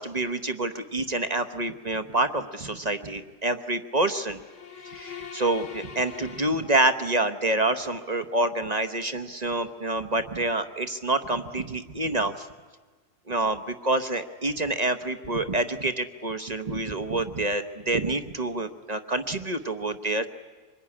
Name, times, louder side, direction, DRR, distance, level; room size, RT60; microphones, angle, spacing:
voice 1, 0.0-4.4 4.8-12.5 13.3-20.3, right 2 dB, 35° right, 10 dB, 0.8 m, -27 dB
sound 1, 4.2-7.3, left 7 dB, 50° left, 1.5 m, -43 dB
25.0 x 21.5 x 9.8 m, 1.4 s
omnidirectional pair, 1.7 m